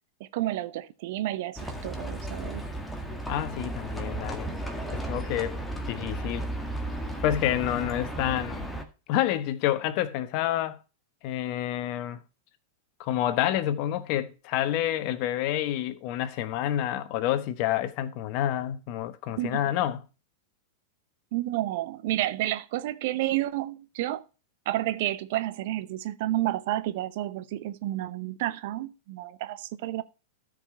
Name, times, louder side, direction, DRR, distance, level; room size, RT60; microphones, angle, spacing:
voice 1, 0.2-2.6 19.4-19.8 21.3-24.2 24.7-30.0, right 15 dB, 60° right, 0.7 m, -30 dB
Livestock farm animals working animals, 1.6-8.8, right 1 dB, 5° left, 1.8 m, -34 dB
voice 2, 3.3-4.5 4.9-5.6 5.9-6.5 7.2-8.7 9.1-10.8 11.2-12.2 13.0-20.0, left 12 dB, 50° left, 1.0 m, -28 dB
13.5 x 5.0 x 4.5 m
hypercardioid pair, 95°, 0 cm